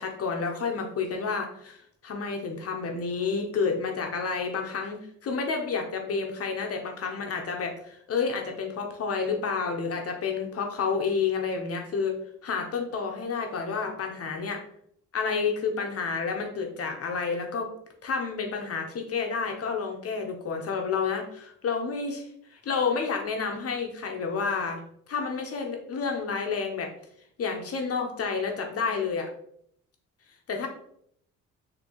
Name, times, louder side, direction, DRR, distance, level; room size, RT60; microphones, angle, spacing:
voice 1, 0.0-1.8 2.0-12.2 12.4-14.6 15.1-17.7 18.0-24.8 25.1-26.9 27.4-29.3 30.5-30.7, left 5 dB, 50° left, 3 dB, 0.8 m, -30 dB
4.4 x 2.9 x 2.9 m, 0.68 s
cardioid pair, 90°, 30 cm